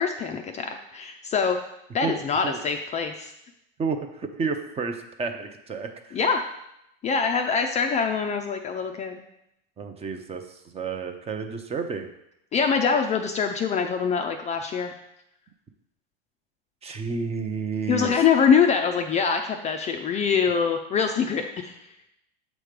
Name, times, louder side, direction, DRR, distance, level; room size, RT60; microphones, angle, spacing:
voice 1, 0.0-1.6 1.9-3.3 6.1-6.4 7.0-9.2 12.5-15.0 17.9-21.7, left 6 dB, 25° left, 5 dB, 0.4 m, -24 dB
voice 2, 3.8-6.2 9.8-10.4 10.7-12.1 16.8-18.1, right 5 dB, 20° right, 6 dB, 0.6 m, -30 dB
7.4 x 3.1 x 5.1 m, 0.82 s
supercardioid pair, 115°, 29 cm